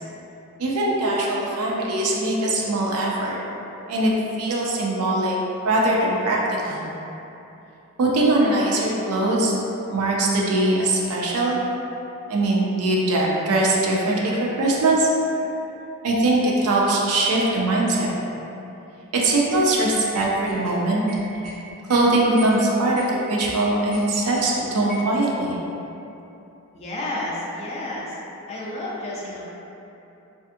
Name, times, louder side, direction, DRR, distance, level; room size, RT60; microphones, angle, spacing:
voice 1, 0.6-3.4 3.9-4.1 4.4-5.4 5.6-6.9 8.0-9.6 9.9-11.6 12.3-15.1 16.0-18.1 19.1-21.0 21.9-25.6, right 2 dB, 80° right, -3 dB, 0.4 m, -21 dB
sound 1, 19.5-19.6 20.1-20.7 21.1-21.6 21.9-22.0 22.4-22.6 22.9-23.0 23.4-24.5 24.9-25.1, right 1 dB, 5° left, 0.9 m, -39 dB
voice 2, 26.7-28.2 28.5-29.4, left 1 dB, 30° left, -5 dB, 0.4 m, -31 dB
2.5 x 2.5 x 2.5 m, 2.9 s
head